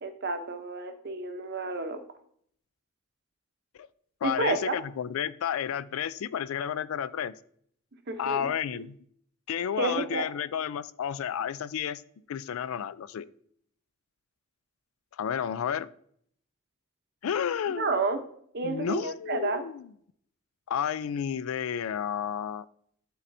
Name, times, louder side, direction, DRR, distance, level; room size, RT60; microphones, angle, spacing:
voice 1, 0.0-2.0 4.2-4.8 8.1-8.5 9.8-10.3 17.8-18.2 18.5-19.6, right 3 dB, 50° right, 7 dB, 0.8 m, -30 dB
voice 2, 4.2-7.3 8.2-9.0 9.5-12.0 12.3-13.3 15.2-15.9 17.2-17.9 18.6-19.9 20.7-22.7, left 8 dB, 85° left, 16 dB, 0.4 m, -31 dB
11.5 x 4.2 x 2.6 m, 0.64 s
head